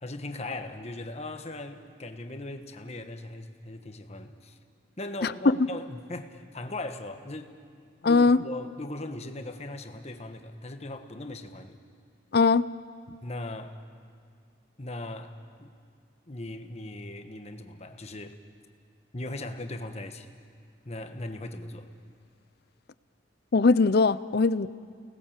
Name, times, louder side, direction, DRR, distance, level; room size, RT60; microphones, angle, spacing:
voice 1, 0.0-4.6 5.0-7.7 8.0-11.8 13.2-13.8 14.8-15.3 15.6-15.7 16.3-18.4 19.1-20.3 20.8-21.9, left 2 dB, 35° left, 7 dB, 1.3 m, -39 dB
voice 2, 8.0-8.4 12.3-12.7 23.5-24.7, left 4 dB, 55° left, 16 dB, 0.6 m, -20 dB
29.5 x 19.0 x 7.5 m, 2.2 s
head